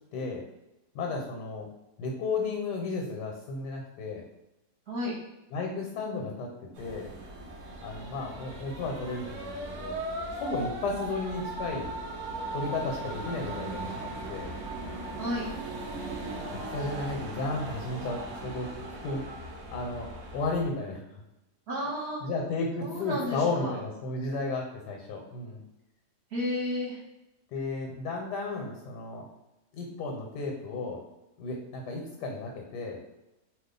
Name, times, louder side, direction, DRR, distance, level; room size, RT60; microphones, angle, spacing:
voice 1, 0.1-0.4 0.9-1.7 2.0-4.2 5.5-7.1 7.8-10.0 10.4-11.9 12.5-14.5 16.5-19.2 19.7-21.2 22.2-25.6 27.5-29.3 29.7-31.0 31.4-33.0, left 3 dB, 85° left, 1 dB, 1.2 m, -33 dB
sound 1, 6.7-20.6, right 2 dB, 65° right, 0.8 m, -38 dB
voice 2, 21.7-22.2 22.8-23.8 26.3-27.0, left 1 dB, 50° right, -6 dB, 1.0 m, -32 dB
2.6 x 2.3 x 3.7 m, 0.94 s
omnidirectional pair, 1.7 m